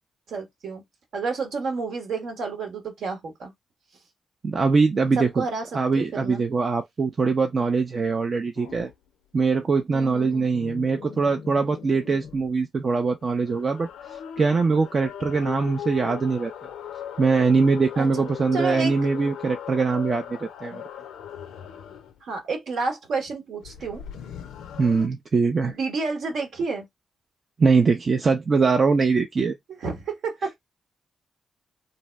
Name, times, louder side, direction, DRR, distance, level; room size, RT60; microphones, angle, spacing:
voice 1, 0.3-0.8 1.1-3.5 5.2-5.6 5.9-6.5 9.9-10.5 18.0-18.1 18.5-18.9 20.7-20.8 22.2-24.0 25.7-26.9 29.7-30.6, right 4 dB, 70° right, 1.0 m, -30 dB
voice 2, 4.4-5.4 5.7-8.9 9.3-13.9 14.4-16.5 17.2-20.8 24.8-25.7 27.6-29.5, right 4 dB, 50° right, 0.5 m, -22 dB
sound 1, 8.6-8.9 10.0-12.5 13.2-22.2 23.6-25.1, left 9 dB, 80° left, 0.4 m, -39 dB
2.7 x 2.0 x 3.2 m
supercardioid pair, 50°, 0 cm